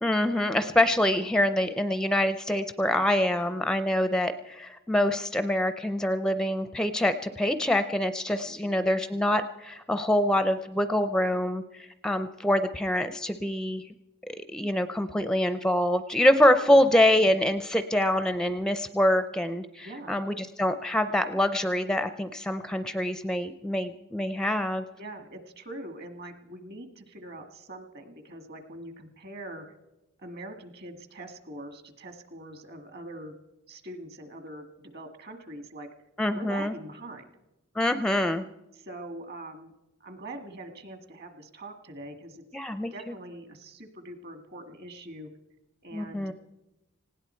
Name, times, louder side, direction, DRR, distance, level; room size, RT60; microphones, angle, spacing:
voice 1, 0.0-13.8 14.3-24.9 36.2-36.7 37.8-38.4 42.5-42.9 45.9-46.3, left 1 dB, 5° left, 10 dB, 0.5 m, -25 dB
voice 2, 8.4-8.9 16.7-16.9 19.8-20.2 25.0-29.7 30.2-33.4 33.7-35.9 36.3-37.3 38.7-39.7 40.0-42.4 42.9-45.3 45.8-46.3, right 1 dB, 50° right, 7 dB, 1.9 m, -43 dB
19.0 x 17.0 x 4.4 m, 0.99 s
head